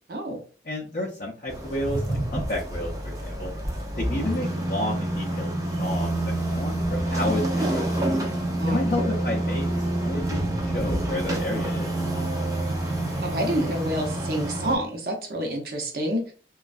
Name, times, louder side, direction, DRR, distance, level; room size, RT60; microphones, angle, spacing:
voice 1, 0.1-0.4 8.6-8.8 13.2-16.3, right 1 dB, 55° right, 2 dB, 0.7 m, -28 dB
voice 2, 0.6-3.5 4.0-5.5 5.8-6.2 6.5-7.9 8.7-11.9, left 1 dB, 45° left, -1 dB, 0.4 m, -31 dB
sound 1, 1.5-14.7, right 1 dB, 20° right, 0.5 m, -27 dB
3.0 x 2.2 x 2.5 m, 0.39 s
head